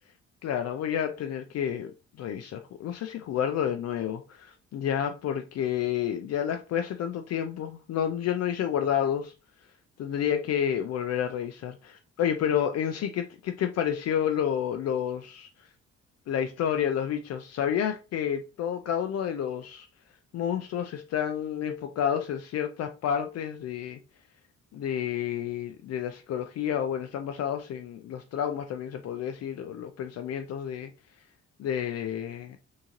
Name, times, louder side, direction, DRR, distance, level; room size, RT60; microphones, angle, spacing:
voice 1, 0.4-1.9 2.2-9.3 10.0-15.5 16.3-19.9 20.3-24.0 24.7-30.9 31.6-32.6, left 9 dB, 60° left, 0.4 m, -30 dB
3.7 x 2.7 x 2.9 m
cardioid pair, 90°, 30 cm